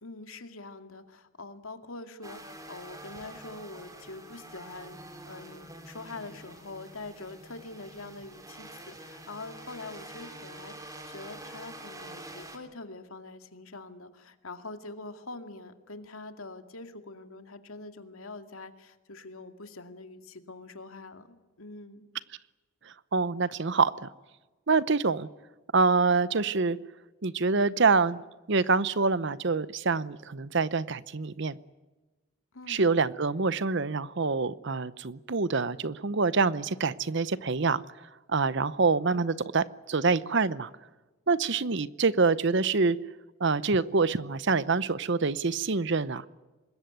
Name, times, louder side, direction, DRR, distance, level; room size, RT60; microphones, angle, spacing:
voice 1, 0.0-21.3 21.6-22.1 32.5-32.9, left 3 dB, 80° left, 7 dB, 2.3 m, -44 dB
sound 1, 2.2-12.6, right 1 dB, 15° right, 3.2 m, -46 dB
voice 2, 23.1-24.1 24.7-25.3 25.7-26.8 27.2-28.2 28.5-31.6 32.7-37.8 38.3-40.7 41.3-43.0 43.4-46.2, right 4 dB, 55° right, 17 dB, 0.8 m, -26 dB
25.0 x 21.0 x 9.3 m, 1.2 s
head